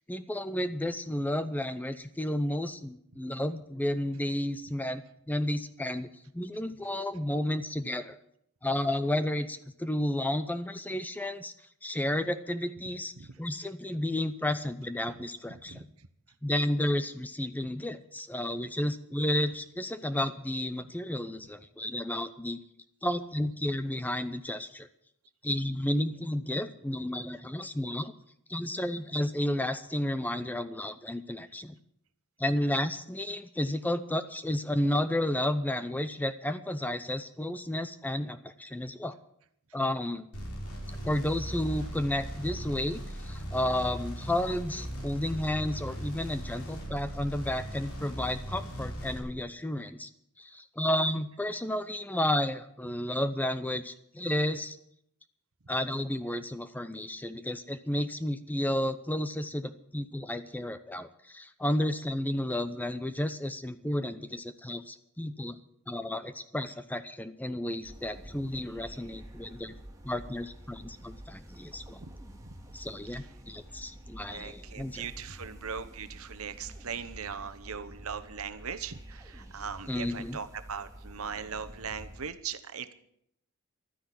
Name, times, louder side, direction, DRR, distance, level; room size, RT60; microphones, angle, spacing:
voice 1, 0.1-6.1 6.3-8.1 8.6-11.5 11.8-13.1 13.4-15.9 16.4-22.6 23.0-24.9 25.4-28.1 28.5-31.8 32.4-39.2 39.7-40.3 41.0-50.1 50.4-54.8 55.7-65.6 65.9-69.7 70.0-72.0 72.7-75.1 79.9-80.4, left 1 dB, 10° left, 11 dB, 0.6 m, -32 dB
sound 1, 40.3-49.2, equal, 85° left, 4.3 m, -38 dB
sound 2, 67.8-82.3, right 1 dB, 15° right, 2.0 m, -48 dB
voice 2, 74.3-82.9, right 6 dB, 75° right, 10 dB, 1.0 m, -39 dB
12.5 x 10.0 x 8.3 m, 0.72 s
head